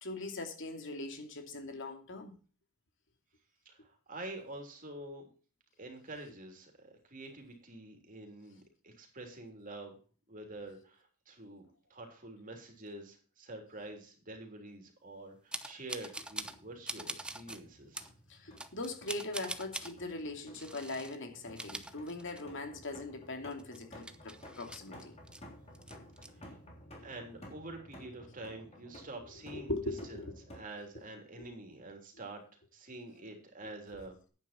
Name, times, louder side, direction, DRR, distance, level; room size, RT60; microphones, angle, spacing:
voice 1, 0.0-2.3 18.3-25.1 29.5-30.3 31.4-31.5, left 2 dB, 55° left, 2.6 m, -40 dB
voice 2, 3.6-5.3 5.8-10.0 10.3-18.1 26.3-26.6 27.0-29.8 30.1-32.4 32.7-34.2, right 2 dB, 35° right, 3.3 m, -47 dB
sound 1, 15.5-16.6 16.9-17.6 17.9-18.1 18.6-19.9 20.5-21.2 21.5-22.7 23.0-23.1 23.5-25.4 25.7-26.3, right 2 dB, 5° right, 0.7 m, -43 dB
sound 2, 16.1-30.6, equal, 30° left, 3.5 m, -54 dB
10.5 x 9.2 x 4.4 m
head